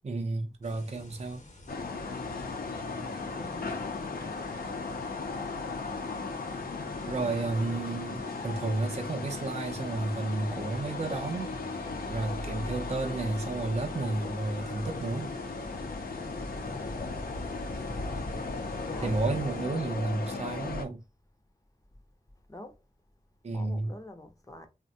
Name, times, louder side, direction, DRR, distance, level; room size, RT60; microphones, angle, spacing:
voice 1, 0.0-1.4 7.1-11.6 12.1-15.3 19.0-21.0 23.4-23.9, right 2 dB, 45° right, 0.5 m, -32 dB
sound 1, 0.6-19.6, left 1 dB, 55° left, 0.9 m, -45 dB
sound 2, 1.7-20.9, left 3 dB, 80° left, 0.6 m, -37 dB
voice 2, 3.3-4.5 16.2-16.5 18.7-19.2 22.5-22.8 23.5-24.7, left 2 dB, 20° left, 0.6 m, -46 dB
3.3 x 2.1 x 2.6 m
wide cardioid pair, 70°, 15 cm